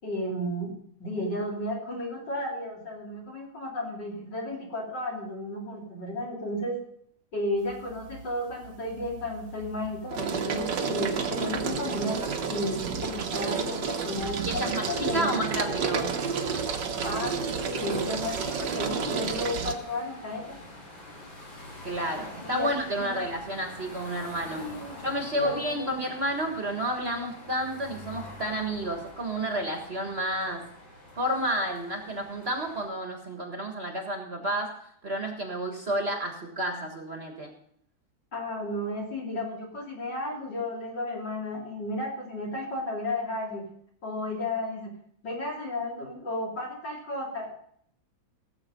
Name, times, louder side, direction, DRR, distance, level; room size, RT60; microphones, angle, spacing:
voice 1, 0.0-0.7 1.0-6.8 7.3-12.2 12.5-15.4 17.0-20.6 22.4-23.3 24.5-25.0 25.3-26.1 38.3-43.6 44.0-44.9 45.2-47.5, left 1 dB, 60° left, -2 dB, 4.0 m, -33 dB
sound 1, 7.7-8.2 8.6-19.8, right 5 dB, 65° right, 1.8 m, -31 dB
voice 2, 14.4-16.1 21.8-24.6 25.0-30.7 31.1-34.7 35.0-37.5, right 1 dB, 35° right, 3 dB, 1.7 m, -31 dB
sound 2, 17.8-32.9, left 1 dB, 80° left, 4.5 m, -46 dB
17.5 x 7.7 x 5.3 m, 0.67 s
omnidirectional pair, 2.1 m